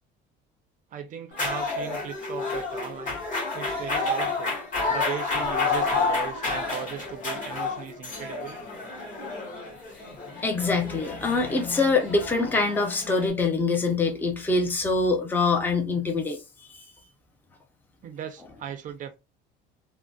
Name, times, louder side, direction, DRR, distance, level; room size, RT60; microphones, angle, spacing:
voice 1, 0.9-3.2 3.5-4.6 4.9-8.6 18.0-19.2, right 8 dB, 40° right, 0.5 m, -37 dB
sound 1, 1.3-13.3, left 3 dB, 40° left, 1.5 m, -30 dB
voice 2, 10.3-16.4 16.7-16.8, left 3 dB, 10° left, 0.5 m, -24 dB
3.7 x 2.1 x 2.3 m
cardioid pair, 155°, 21 cm